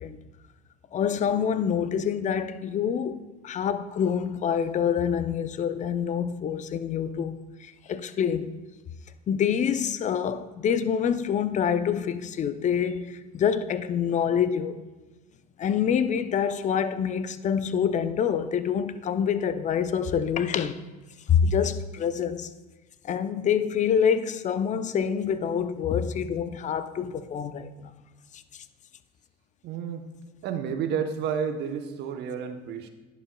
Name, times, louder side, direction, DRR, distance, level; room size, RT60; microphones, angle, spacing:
voice 1, 0.9-8.6 9.3-14.8 15.6-20.8 21.3-22.5 23.0-27.9, left 7 dB, 40° left, 0.6 m, -26 dB
voice 2, 29.6-30.0 30.4-32.9, right 7 dB, 60° right, 0.9 m, -30 dB
11.0 x 8.2 x 2.3 m
hypercardioid pair, 75°, 20 cm